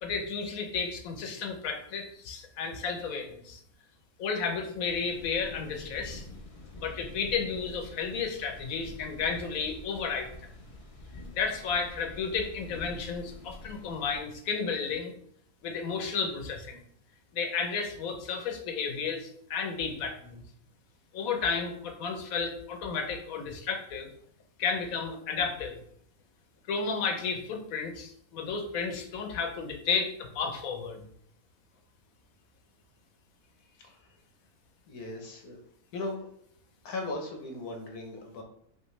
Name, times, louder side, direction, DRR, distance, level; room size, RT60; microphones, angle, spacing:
voice 1, 0.0-3.6 4.2-6.2 6.8-10.3 11.3-15.1 15.6-16.8 17.3-20.4 21.1-24.1 24.6-25.8 26.7-31.0, left 5 dB, 70° left, 5 dB, 1.2 m, -32 dB
sound 1, 4.8-14.2, left 2 dB, 30° left, 0.7 m, -47 dB
voice 2, 34.9-35.6 35.9-36.3 36.8-38.4, left 2 dB, 90° left, 3 dB, 1.4 m, -37 dB
5.5 x 3.0 x 3.1 m, 0.67 s
omnidirectional pair, 1.6 m